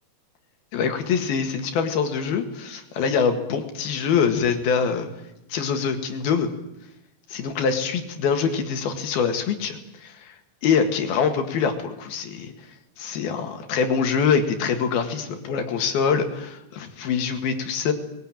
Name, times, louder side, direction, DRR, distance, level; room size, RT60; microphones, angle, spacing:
voice 1, 0.7-5.1 5.5-6.5 7.3-10.3 10.6-12.5 13.0-17.9, left 6 dB, 70° left, 6 dB, 3.7 m, -24 dB
21.5 x 19.5 x 8.9 m, 0.88 s
omnidirectional pair, 4.6 m